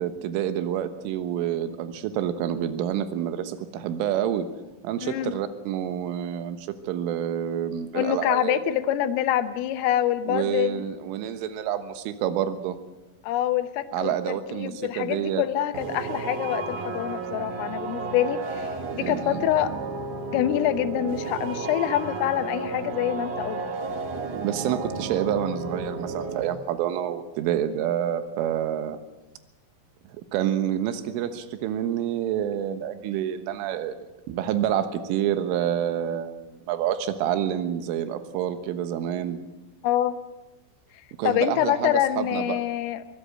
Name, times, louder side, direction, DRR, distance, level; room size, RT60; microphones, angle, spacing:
voice 1, 0.0-4.5 4.8-8.6 10.3-12.8 13.9-15.4 19.0-19.4 24.4-29.0 30.3-39.4 41.2-42.6, right 10 dB, 80° right, 10 dB, 3.7 m, -28 dB
voice 2, 5.0-5.3 7.9-10.8 13.2-14.1 14.5-19.7 20.3-23.6 39.8-40.2 41.2-43.2, left 12 dB, 85° left, 11 dB, 3.6 m, -26 dB
sound 1, 15.7-26.4, right 4 dB, 60° right, 2.3 m, -32 dB
23.5 x 17.0 x 7.8 m, 1.0 s
omnidirectional pair, 5.7 m